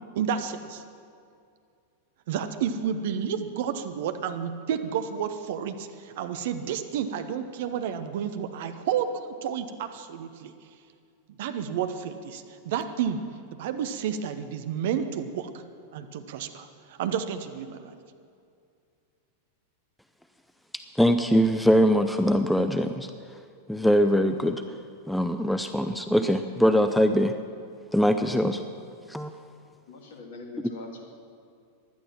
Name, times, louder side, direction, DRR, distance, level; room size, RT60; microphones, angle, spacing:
voice 1, 0.1-0.8 2.3-10.5 11.4-13.2 13.6-15.6 15.9-17.9, right 8 dB, 55° right, 9 dB, 0.8 m, -31 dB
voice 2, 21.0-23.1 23.7-24.6 25.1-27.3 27.9-28.6 29.1-29.3, equal, ahead, 8 dB, 0.5 m, -22 dB
voice 3, 29.9-31.0, left 3 dB, 55° left, 3 dB, 2.2 m, -42 dB
15.5 x 11.5 x 5.9 m, 2.4 s
figure-of-eight pair, 90°, 0 cm